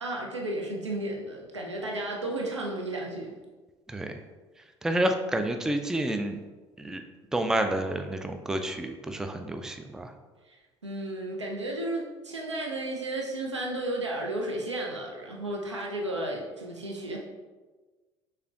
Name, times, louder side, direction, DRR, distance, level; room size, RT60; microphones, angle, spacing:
voice 1, 0.0-3.3 10.5-10.6 10.8-17.2, right 1 dB, 85° right, -1 dB, 0.5 m, -33 dB
voice 2, 4.8-6.4 6.8-7.0 7.3-10.1, right 1 dB, 5° right, 6 dB, 0.3 m, -29 dB
6.4 x 2.2 x 2.4 m, 1.3 s
figure-of-eight pair, 55°, 15 cm